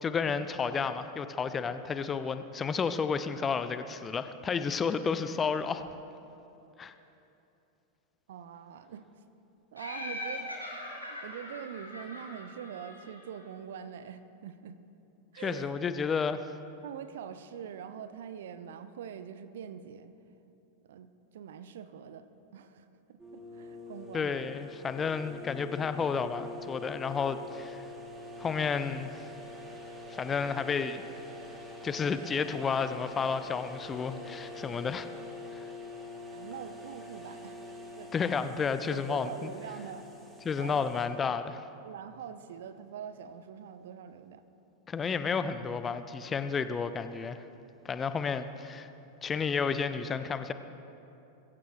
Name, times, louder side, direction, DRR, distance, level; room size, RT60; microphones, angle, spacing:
voice 1, 0.0-5.8 6.8-6.9 15.4-16.4 24.1-27.8 28.4-29.3 30.1-31.0 31.8-35.1 35.5-35.7 38.1-39.5 40.4-41.6 44.9-47.4 47.8-48.9 49.2-50.5, left 5 dB, 20° left, 11 dB, 0.6 m, -31 dB
voice 2, 8.3-9.1 9.7-10.5 11.1-14.8 15.3-15.7 16.8-20.1 20.8-22.2 22.5-24.4 36.3-37.6 38.0-38.1 38.9-40.1 40.6-40.9 41.8-44.4, right 8 dB, 60° right, 12 dB, 0.7 m, -44 dB
Laughter, 9.8-13.4, left 1 dB, 85° left, 2.8 m, -41 dB
sound 1, 23.2-41.1, left 2 dB, 10° right, 2.3 m, -45 dB
22.0 x 15.5 x 3.2 m, 2.9 s
figure-of-eight pair, 90°, 0 cm